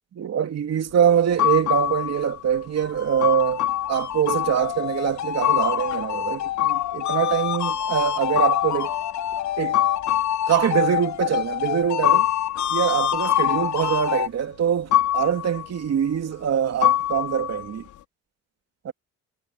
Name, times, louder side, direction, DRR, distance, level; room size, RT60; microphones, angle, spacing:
voice 1, 0.1-8.9 9.6-9.8 10.5-12.3 12.7-17.9 18.8-18.9, right 8 dB, 60° right, 2.9 m, -24 dB
sound 1, 1.0-2.5 3.2-7.5 8.3-9.1 9.7-10.6 12.0-13.0 13.3-14.1 14.9-15.7 16.8-17.9, left 13 dB, 85° left, 4.2 m, -25 dB
sound 2, 2.5-14.3, left 10 dB, 70° left, 1.2 m, -28 dB
cardioid pair, 90°, 30 cm